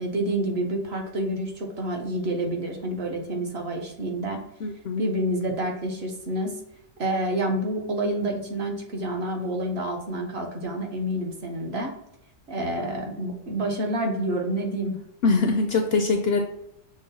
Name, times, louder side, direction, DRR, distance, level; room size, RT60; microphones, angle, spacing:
voice 1, 0.0-4.4 5.0-6.6 7.0-11.9 12.5-15.0, right 1 dB, 55° right, 2 dB, 1.0 m, -28 dB
voice 2, 4.6-5.0 15.2-16.4, left 3 dB, 65° left, 4 dB, 0.7 m, -23 dB
6.2 x 2.1 x 4.0 m, 0.78 s
omnidirectional pair, 1.4 m